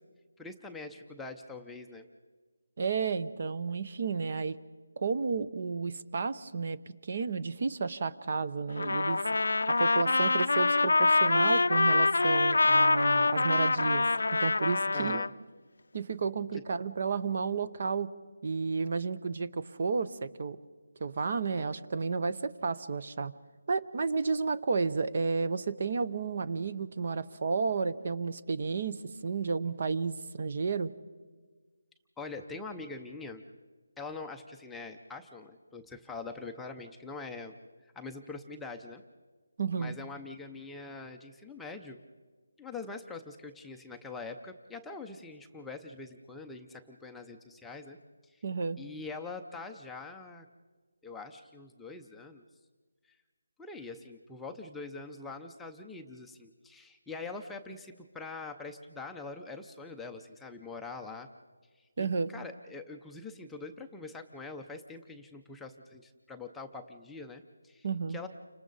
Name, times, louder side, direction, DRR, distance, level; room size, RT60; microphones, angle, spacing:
voice 1, 0.4-2.1 14.9-15.3 32.2-33.4 34.0-37.6 37.8-39.0 39.8-42.0 42.6-48.0 48.2-48.4 48.8-50.5 51.0-52.4 53.0-53.2 53.6-61.3 61.8-68.3, left 3 dB, 5° left, 2 dB, 0.6 m, -44 dB
voice 2, 2.8-4.6 5.0-6.8 7.0-9.2 9.7-14.0 14.4-15.2 15.9-18.1 18.4-20.6 21.0-23.3 23.7-30.9 39.6-39.9 48.4-48.8 62.0-62.3 67.8-68.2, right 4 dB, 40° right, 13 dB, 0.8 m, -32 dB
Trumpet, 8.8-15.3, left 3 dB, 75° left, 0.6 m, -25 dB
30.0 x 26.0 x 4.0 m, 1.4 s
figure-of-eight pair, 170°, 0 cm